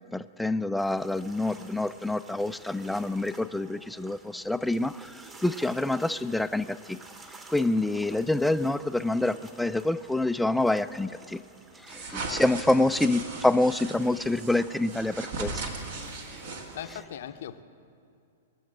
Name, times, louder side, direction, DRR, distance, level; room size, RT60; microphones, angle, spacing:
voice 1, 0.1-7.0 7.5-11.4 11.8-15.6 16.3-16.4, left 2 dB, 5° left, 13 dB, 0.3 m, -27 dB
sound 1, 0.8-17.1, right 2 dB, 20° right, 1.2 m, -51 dB
sound 2, 11.9-17.0, right 3 dB, 60° right, 1.8 m, -38 dB
voice 2, 16.7-17.6, left 10 dB, 60° left, 10 dB, 0.7 m, -41 dB
20.5 x 7.1 x 7.6 m, 2.4 s
figure-of-eight pair, 105°, 0 cm